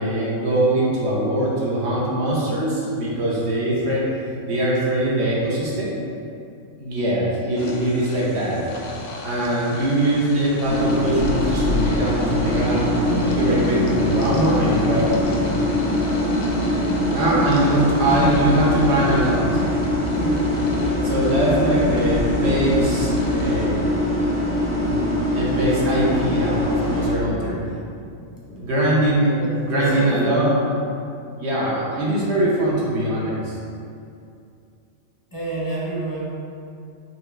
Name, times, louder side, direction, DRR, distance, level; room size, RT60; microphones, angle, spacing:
voice 1, 0.0-4.0 4.4-6.0 6.8-8.7 9.2-15.2 17.1-19.5 20.2-20.4 21.0-23.8 24.7-27.5 28.6-29.4 29.7-30.5 31.4-33.6, right 1 dB, 55° right, -6 dB, 1.0 m, -22 dB
sound 1, 7.6-23.7, left 4 dB, 65° left, 0.7 m, -35 dB
sound 2, 10.6-27.1, left 1 dB, 75° right, 1.6 m, -22 dB
voice 2, 27.3-27.7 28.2-28.9 29.4-30.4 35.3-36.3, right 2 dB, 20° left, -7 dB, 0.8 m, -31 dB
4.5 x 3.1 x 3.3 m, 2.5 s
omnidirectional pair, 1.5 m